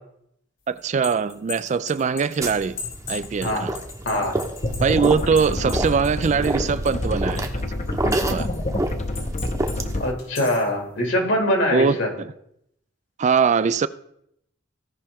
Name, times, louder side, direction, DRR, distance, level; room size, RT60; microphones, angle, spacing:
voice 1, 0.7-2.7 3.1-3.7 4.8-7.5 8.1-8.5 11.7-12.3 13.2-13.9, right 5 dB, 40° right, 0.3 m, -22 dB
sound 1, 0.8-7.1 7.4-8.6 9.2-9.8 10.2-10.7, left 5 dB, 85° left, 4.4 m, -37 dB
sound 2, 2.4-10.1, right 1 dB, 15° right, 0.8 m, -30 dB
voice 2, 4.1-4.4 10.0-12.1, left 1 dB, 70° left, 2.5 m, -23 dB
sound 3, 4.6-10.0, left 1 dB, 40° left, 0.8 m, -27 dB
16.5 x 5.6 x 3.6 m
head